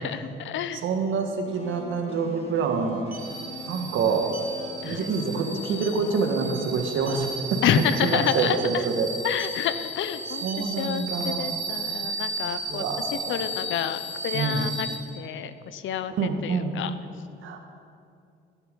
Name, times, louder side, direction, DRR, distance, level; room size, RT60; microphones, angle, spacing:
voice 1, 0.0-0.8 4.8-5.1 7.6-8.8 9.2-14.9 15.2-16.9, left 9 dB, 75° left, 12 dB, 0.8 m, -29 dB
voice 2, 0.7-3.1 3.7-4.3 4.8-7.6 8.0-9.1 10.4-11.5 12.6-13.4 14.3-14.7 16.2-16.8 17.4-17.6, right 5 dB, 80° right, 4 dB, 1.7 m, -27 dB
sound 1, 1.3-1.4 1.6-1.8 2.8-3.3 4.3-4.5 5.0-5.1 5.5-5.6 5.8-6.1 6.9-7.3 8.2-8.5 9.3-9.6 10.3-11.6, right 5 dB, 45° right, 2.4 m, -44 dB
sound 2, 1.4-9.6, equal, 30° left, 2.7 m, -41 dB
sound 3, 3.1-15.0, right 2 dB, 20° right, 3.9 m, -34 dB
16.0 x 11.0 x 5.3 m, 2.5 s
cardioid pair, 90°, 20 cm